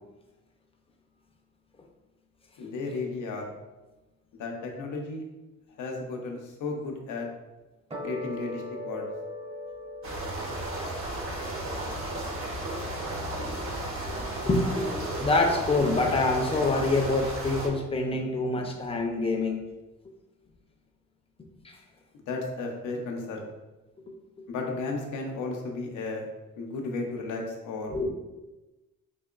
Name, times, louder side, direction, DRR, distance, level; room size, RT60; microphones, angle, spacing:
voice 1, 2.6-3.5 4.4-5.2 5.8-7.3 8.0-9.1 22.1-23.5 24.5-26.3 26.6-28.0, left 3 dB, 80° left, 1 dB, 0.7 m, -34 dB
sound 1, 7.9-14.4, left 1 dB, 20° right, 0.8 m, -42 dB
sound 2, 10.0-17.7, right 1 dB, 45° right, 0.9 m, -34 dB
voice 2, 14.1-19.6 21.6-21.8 27.9-28.1, left 2 dB, 20° left, 1 dB, 0.6 m, -26 dB
4.1 x 2.9 x 2.4 m, 1.1 s
cardioid pair, 90°, 30 cm